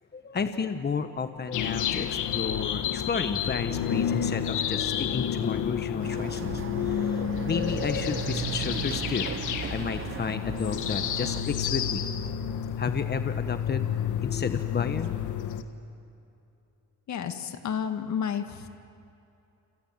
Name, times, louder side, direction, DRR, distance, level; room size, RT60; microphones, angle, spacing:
voice 1, 0.1-9.3 9.7-12.0 12.7-13.9 14.2-15.2, left 5 dB, 35° left, 8 dB, 1.3 m, -32 dB
sound 1, 1.5-15.6, left 9 dB, 80° left, 1.5 m, -30 dB
Chatter / Car passing by / Motorcycle, 6.0-11.4, right 8 dB, 45° right, 1.0 m, -36 dB
voice 2, 17.1-18.7, left 8 dB, 65° left, 7 dB, 2.1 m, -31 dB
29.0 x 27.0 x 7.5 m, 2.8 s
cardioid pair, 90°, 30 cm